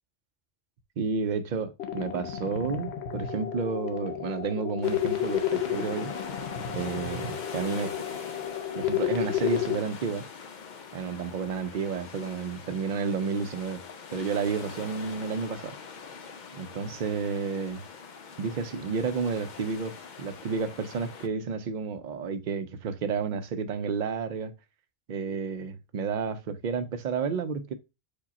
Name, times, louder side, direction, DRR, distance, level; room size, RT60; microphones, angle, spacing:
voice 1, 1.0-6.1 6.7-8.0 8.7-10.3 10.9-13.8 14.1-15.8 16.5-17.8 18.4-24.5 25.1-27.7, right 5 dB, 55° right, 0.6 m, -31 dB
sound 1, 1.8-9.8, left 11 dB, 90° left, 0.9 m, -31 dB
sound 2, 4.8-21.3, left 5 dB, 55° left, 0.6 m, -43 dB
4.9 x 2.2 x 4.0 m
omnidirectional pair, 1.1 m